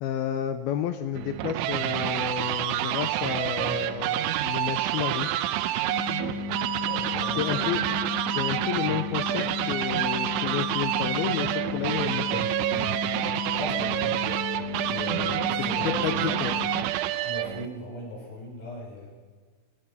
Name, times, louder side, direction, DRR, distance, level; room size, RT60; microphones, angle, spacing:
voice 1, 0.0-5.3 7.3-7.8 8.3-12.4 15.6-16.5, left 10 dB, 80° left, 8 dB, 2.2 m, -31 dB
sound 1, 1.2-17.7, right 13 dB, 90° right, 3.3 m, -28 dB
sound 2, 5.9-16.8, left 11 dB, 65° left, 2.3 m, -35 dB
voice 2, 6.8-7.6 13.6-14.1 14.8-16.7 17.2-19.1, left 1 dB, 50° left, -2 dB, 8.6 m, -38 dB
23.5 x 20.5 x 5.7 m, 1.5 s
omnidirectional pair, 5.4 m